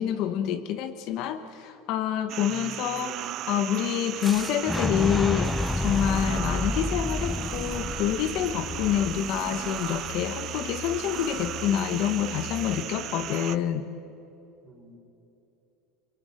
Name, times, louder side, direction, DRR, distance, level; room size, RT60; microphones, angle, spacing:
voice 1, 0.0-13.9, left 10 dB, 50° left, 9 dB, 1.1 m, -27 dB
sound 1, 2.3-13.6, right 13 dB, 40° right, 0.7 m, -36 dB
voice 2, 2.4-3.3 14.6-15.0, right 3 dB, 10° right, 2 dB, 3.9 m, -47 dB
Fire / Explosion, 4.2-10.1, left 2 dB, 5° left, 0.6 m, -30 dB
sound 2, 5.4-12.8, left 7 dB, 25° left, 2.4 m, -42 dB
24.0 x 23.5 x 9.2 m, 2.8 s
cardioid pair, 160°, 0 cm